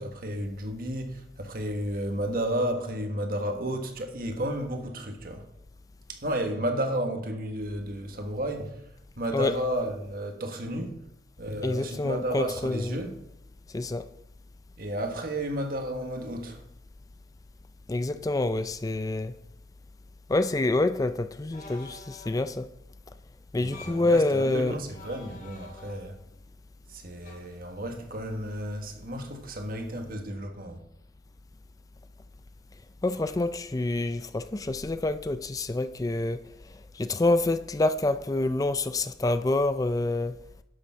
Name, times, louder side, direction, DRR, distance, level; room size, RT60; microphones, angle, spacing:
voice 1, 0.0-5.5 6.1-11.0 11.4-13.2 14.8-16.6 23.6-26.1 26.9-30.8, right 1 dB, 55° right, 1.5 m, -32 dB
voice 2, 11.6-13.0 13.7-14.1 17.9-19.3 20.3-22.7 23.5-24.7 33.0-36.4 36.7-40.3, left 2 dB, 20° left, 0.4 m, -27 dB
sound 1, 21.5-22.5 23.6-24.1 24.9-26.3 27.2-27.3, left 2 dB, 45° left, 1.8 m, -48 dB
11.5 x 7.0 x 5.7 m
head